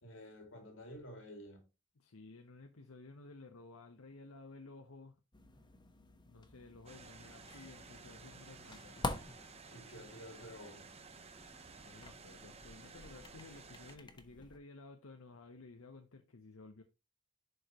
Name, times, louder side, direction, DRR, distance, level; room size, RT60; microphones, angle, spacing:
voice 1, 0.0-1.7 9.7-10.9, equal, 70° left, 2.5 m, -51 dB
voice 2, 2.0-5.2 6.2-9.2 11.8-16.8, left 3 dB, 90° left, 0.9 m, -55 dB
sound 1, 5.3-14.6, left 2 dB, 20° left, 1.1 m, -48 dB
sound 2, 6.9-14.0, right 4 dB, 30° right, 0.9 m, -55 dB
11.0 x 4.8 x 3.0 m
head